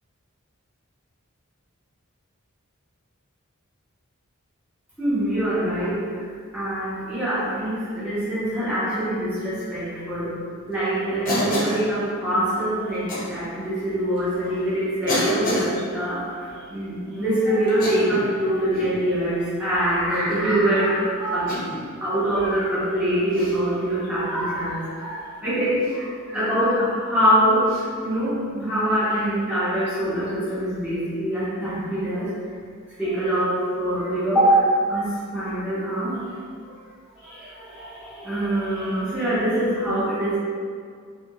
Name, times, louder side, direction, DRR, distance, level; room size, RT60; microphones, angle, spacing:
voice 1, 5.0-6.0 6.5-10.4 10.7-21.6 22.0-27.7 28.0-32.3 33.0-34.6 34.9-36.3 36.6-36.8 37.2-40.4, right 1 dB, 5° right, -13 dB, 0.9 m, -24 dB
Cough, 11.3-11.8 13.1-13.3 14.2-14.3 15.1-15.7 17.7-18.3 18.7-19.0 20.1-20.4 21.5-21.8 23.3-23.6 25.8-26.0 27.7-27.8, left 1 dB, 40° left, 0.6 m, -27 dB
2.4 x 2.2 x 2.9 m, 2.1 s
head